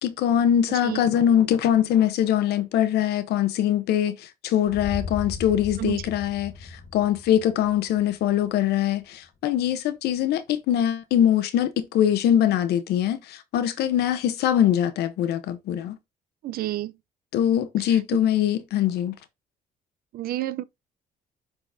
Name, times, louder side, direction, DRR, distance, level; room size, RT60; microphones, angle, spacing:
voice 1, 0.0-16.0 17.3-19.1, left 10 dB, 75° left, 0.9 m, -23 dB
voice 2, 0.7-1.0 5.8-6.0 16.4-16.9 20.1-20.6, right 15 dB, 60° right, 0.5 m, -29 dB
sound 1, 4.6-8.7, left 4 dB, 50° left, 1.5 m, -37 dB
11.0 x 3.9 x 2.6 m
cardioid pair, 110°, 17 cm